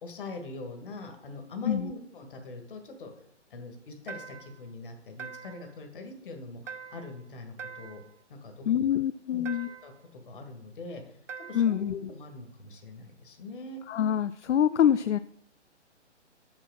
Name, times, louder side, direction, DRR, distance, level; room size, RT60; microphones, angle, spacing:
voice 1, 0.0-3.1 3.5-8.0 8.3-8.7 9.3-11.0 11.4-13.8, left 2 dB, 45° left, 5 dB, 1.8 m, -43 dB
sound 1, 4.1-4.6 5.2-5.7 6.7-7.2 7.6-8.1 9.4-10.0 11.3-11.8, right 6 dB, 85° right, 0.6 m, -43 dB
voice 2, 8.7-9.7 11.5-12.1 13.9-15.2, left 9 dB, 70° left, 13 dB, 0.5 m, -25 dB
6.1 x 5.9 x 6.4 m, 0.69 s
figure-of-eight pair, 145°, 36 cm